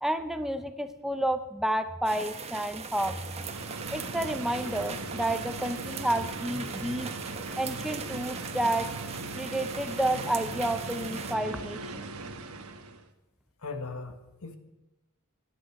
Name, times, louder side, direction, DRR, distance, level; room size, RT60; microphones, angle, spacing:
voice 1, 0.0-3.2 3.9-7.1 7.6-8.9 9.4-12.1, right 1 dB, ahead, 9 dB, 0.6 m, -30 dB
sound 1, 2.0-11.3, right 5 dB, 30° right, 1.1 m, -40 dB
sound 2, 3.1-13.1, right 3 dB, 70° right, 1.3 m, -39 dB
voice 2, 13.6-14.6, left 4 dB, 70° left, 7 dB, 1.6 m, -38 dB
18.0 x 10.5 x 4.7 m, 1.0 s
head